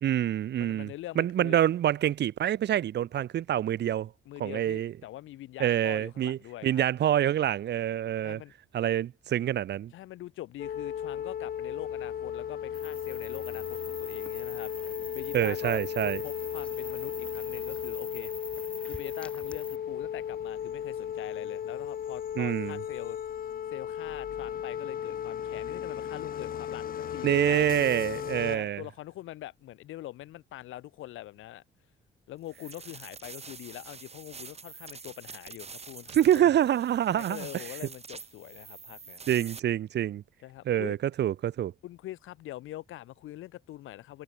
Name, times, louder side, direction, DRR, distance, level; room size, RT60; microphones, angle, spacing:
voice 1, 0.0-4.1 4.4-4.9 5.6-8.4 8.7-9.9 15.3-16.2 22.4-22.8 27.2-28.8 36.1-37.5 39.3-40.2 40.7-41.7, right 11 dB, 60° right, 0.8 m, -26 dB
voice 2, 0.6-1.6 4.3-6.8 8.2-8.5 9.9-14.7 15.1-18.3 18.9-23.2 23.7-27.8 28.3-31.6 32.3-36.5 37.1-39.2 40.4-41.0 41.8-44.2, left 15 dB, 85° left, 5.9 m, -43 dB
sound 1, 10.6-28.6, left 9 dB, 45° left, 0.6 m, -35 dB
sound 2, 12.7-19.8, left 1 dB, 5° left, 6.7 m, -45 dB
sound 3, 32.5-39.6, right 5 dB, 30° right, 2.7 m, -46 dB
cardioid pair, 90°, 20 cm